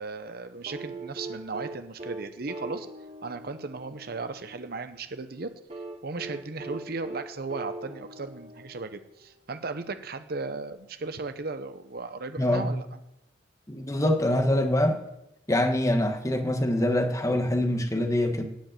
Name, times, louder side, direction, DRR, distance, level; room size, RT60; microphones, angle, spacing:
voice 1, 0.0-2.9 3.2-5.5 6.0-13.0, right 3 dB, 60° right, 10 dB, 0.8 m, -36 dB
sound 1, 0.7-4.7 5.7-9.3 10.7-10.8, right 2 dB, 35° right, 1.3 m, -41 dB
voice 2, 12.4-12.7 13.7-15.0 15.5-18.4, left 1 dB, 20° left, 5 dB, 1.3 m, -24 dB
13.0 x 5.3 x 9.0 m, 0.85 s
head